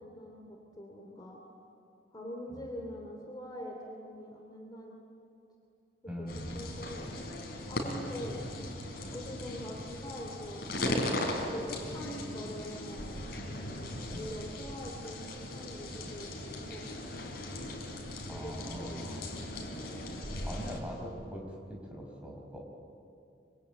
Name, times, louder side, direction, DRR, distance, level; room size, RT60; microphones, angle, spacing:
voice 1, 0.0-1.4 2.1-5.0 6.0-8.4 9.1-11.2 11.5-13.2 14.1-17.4 18.3-19.5 19.8-20.1, equal, 20° left, 0 dB, 2.8 m, -44 dB
voice 2, 6.0-6.6 14.1-14.3 18.3-19.3 20.4-21.4 21.7-22.6, equal, 5° right, -1 dB, 5.0 m, -41 dB
sound 1, 6.3-20.8, left 1 dB, 55° left, 4.2 m, -38 dB
25.5 x 24.5 x 8.9 m, 2.5 s
head